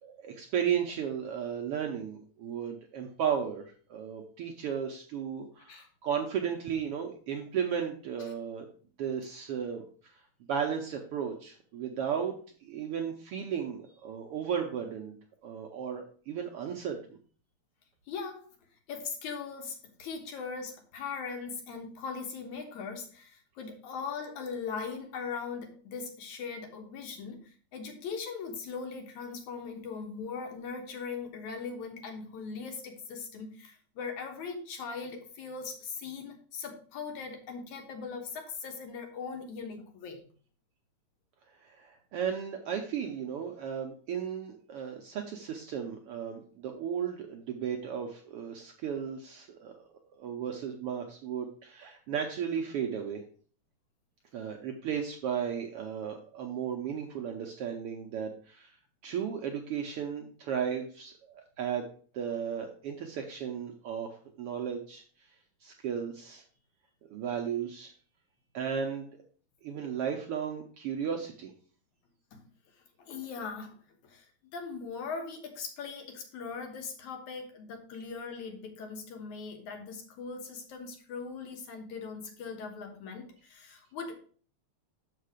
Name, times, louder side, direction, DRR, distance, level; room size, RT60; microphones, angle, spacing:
voice 1, 0.0-8.6 9.0-10.2 10.5-15.2 15.4-17.0 41.6-49.8 50.2-53.2 54.3-58.7 59.0-61.8 62.1-65.0 65.6-66.4 67.1-67.9 68.5-69.1 69.6-71.5, right 8 dB, 75° right, 3 dB, 1.4 m, -35 dB
voice 2, 18.1-18.5 18.9-40.2 72.3-72.5 73.0-74.3 74.5-84.2, left 5 dB, 80° left, 4 dB, 2.6 m, -40 dB
6.7 x 5.3 x 4.9 m, 0.43 s
omnidirectional pair, 3.3 m